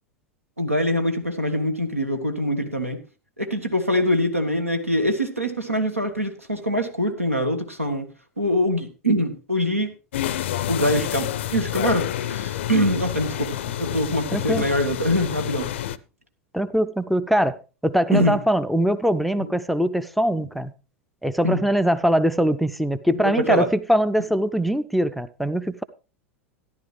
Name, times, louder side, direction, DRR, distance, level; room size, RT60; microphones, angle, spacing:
voice 1, 0.6-3.0 3.4-8.1 8.4-9.9 10.7-15.7 18.1-18.4 19.4-19.5 21.4-21.6 23.1-23.7, equal, 90° right, 1.4 m, -24 dB
sound 1, 10.1-16.0, left 11 dB, 60° left, 0.5 m, -28 dB
voice 2, 14.3-14.7 16.5-17.6 17.8-20.7 21.2-25.8, equal, ahead, 0.4 m, -22 dB
13.5 x 10.5 x 3.3 m
figure-of-eight pair, 85°, 7 cm